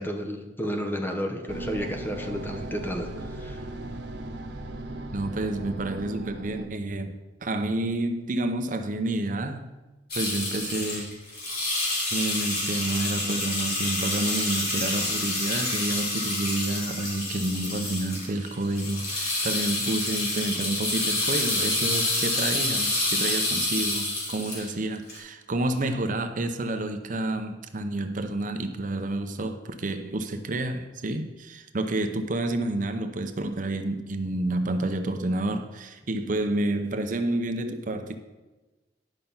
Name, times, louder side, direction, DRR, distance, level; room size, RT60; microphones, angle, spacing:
voice 1, 0.0-3.6, equal, 10° left, 4 dB, 1.0 m, -32 dB
sound 1, 1.5-6.7, right 1 dB, 90° right, 1.0 m, -37 dB
voice 2, 5.1-7.1 7.4-9.7 10.1-11.5 12.1-38.2, right 2 dB, 50° right, 7 dB, 0.7 m, -29 dB
sound 2, 10.1-24.7 25.1-25.2, left 2 dB, 60° left, 3.5 m, -28 dB
10.5 x 5.7 x 5.5 m, 1.2 s
head